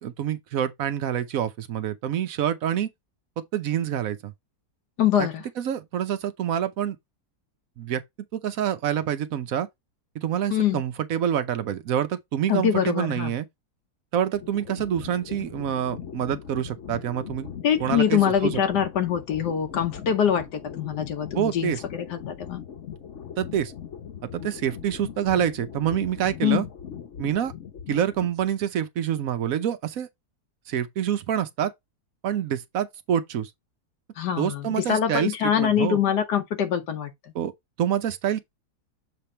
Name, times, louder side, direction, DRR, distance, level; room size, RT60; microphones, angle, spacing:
voice 1, 0.0-2.9 3.5-4.3 5.2-5.3 5.6-7.0 7.8-8.0 8.3-9.7 10.1-13.5 14.1-17.5 17.8-18.6 21.3-21.8 23.4-23.7 24.3-26.7 27.2-27.5 27.9-30.1 30.7-31.7 32.2-33.5 34.4-36.0 37.3-37.5 37.8-38.4, right 9 dB, 65° right, 1.1 m, -27 dB
voice 2, 5.0-5.4 10.5-10.8 12.5-13.3 17.6-21.7 22.1-22.6 26.4-26.6 34.2-37.1, left 9 dB, 80° left, 1.4 m, -24 dB
sound 1, 14.3-28.6, left 8 dB, 50° left, 1.1 m, -40 dB
6.7 x 3.4 x 4.3 m
omnidirectional pair, 1.7 m